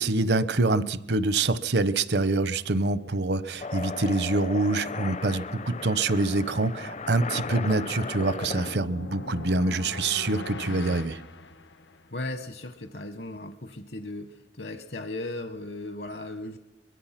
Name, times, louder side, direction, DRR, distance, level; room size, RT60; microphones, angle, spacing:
voice 1, 0.0-11.2, right 2 dB, 70° right, 15 dB, 0.9 m, -25 dB
sound 1, 3.6-8.8, left 4 dB, 40° left, 0.6 m, -36 dB
sound 2, 7.3-12.2, left 3 dB, 90° left, 1.3 m, -41 dB
voice 2, 12.1-16.6, left 2 dB, 60° left, 8 dB, 1.2 m, -36 dB
23.5 x 21.5 x 5.9 m, 0.96 s
head